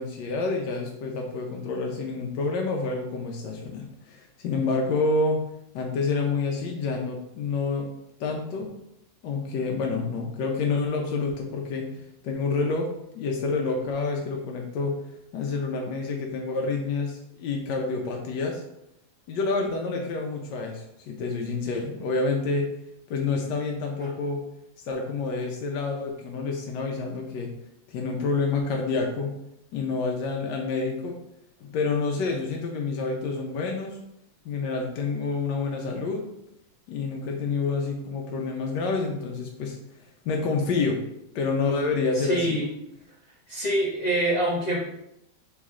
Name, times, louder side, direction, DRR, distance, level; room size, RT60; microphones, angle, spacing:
voice 1, 0.0-5.4 5.7-7.9 8.2-8.7 9.2-15.0 15.3-18.6 19.3-22.7 23.1-24.4 24.8-27.5 27.9-29.3 29.7-31.2 31.6-34.0 34.4-36.3 36.9-39.8 40.2-41.0 41.3-42.6, left 4 dB, 90° left, 1 dB, 1.3 m, -28 dB
voice 2, 42.2-42.7 43.5-44.8, right 1 dB, 40° left, -6 dB, 0.6 m, -25 dB
3.7 x 3.1 x 3.6 m, 0.82 s
omnidirectional pair, 1.8 m